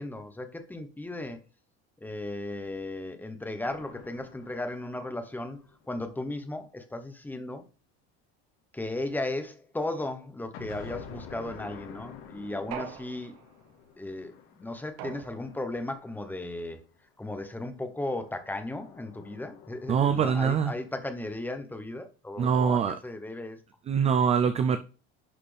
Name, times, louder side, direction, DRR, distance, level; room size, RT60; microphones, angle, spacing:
voice 1, 0.0-1.4 2.0-7.6 8.7-13.3 14.0-14.3 14.6-16.8 17.2-23.6, left 2 dB, 5° left, 0.9 m, -36 dB
sound 1, 3.7-6.5 10.5-16.8 18.1-20.5, left 6 dB, 80° left, 3.1 m, -49 dB
sound 2, 12.7-13.7 15.0-15.8, right 9 dB, 80° right, 1.4 m, -42 dB
voice 2, 19.9-20.7 22.4-23.0 23.9-24.8, right 7 dB, 20° right, 0.3 m, -24 dB
11.0 x 4.2 x 3.4 m
cardioid pair, 145°, 31 cm